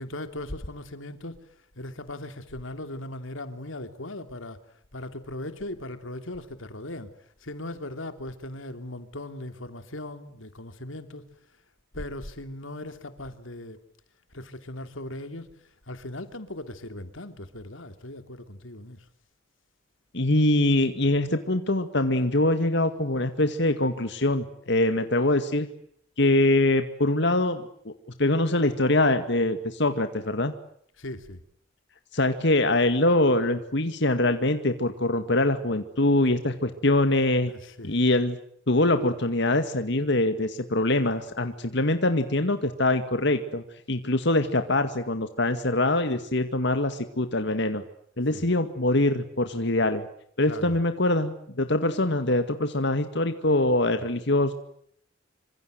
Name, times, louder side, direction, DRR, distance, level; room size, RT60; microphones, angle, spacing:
voice 1, 0.0-11.2 11.9-13.8 14.3-19.1 31.0-31.4 37.5-38.0 48.3-48.5 50.5-50.8, left 1 dB, 90° left, 3.1 m, -38 dB
voice 2, 20.1-25.7 26.2-27.6 28.2-30.5 32.1-37.5 37.8-38.4 38.7-47.8 48.2-50.1 50.4-54.5, left 2 dB, 65° left, 2.1 m, -23 dB
27.0 x 26.0 x 8.0 m
head